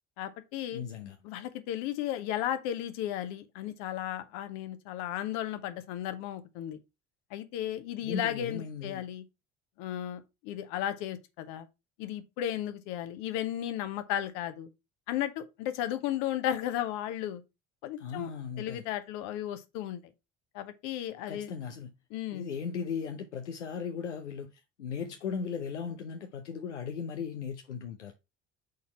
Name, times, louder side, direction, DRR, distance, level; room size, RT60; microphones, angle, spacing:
voice 1, 0.2-0.8 1.2-6.8 7.3-9.2 9.8-11.7 12.0-14.7 15.1-17.4 17.8-18.3 18.6-20.0 20.5-21.5 22.1-22.5, left 11 dB, 60° left, 1.1 m, -34 dB
voice 2, 0.7-1.2 8.0-9.1 18.0-18.8 21.3-21.9 22.3-28.1, left 6 dB, 80° left, 0.7 m, -37 dB
6.4 x 4.2 x 4.3 m
figure-of-eight pair, 55°, 35 cm